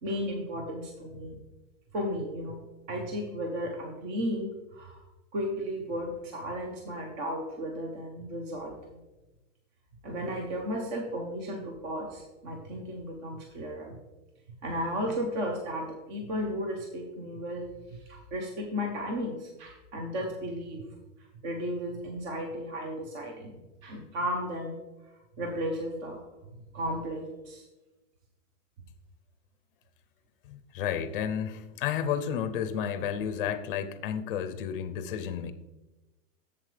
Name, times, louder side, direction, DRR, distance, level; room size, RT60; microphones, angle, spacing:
voice 1, 0.0-1.4 1.9-5.0 5.3-8.8 10.0-14.0 14.6-20.8 21.4-24.8 25.4-26.2 26.7-27.6, equal, 35° right, 2 dB, 0.9 m, -34 dB
voice 2, 30.5-35.5, left 8 dB, 45° left, 11 dB, 0.6 m, -32 dB
7.7 x 7.4 x 3.3 m, 1.1 s
supercardioid pair, 180°, 39 cm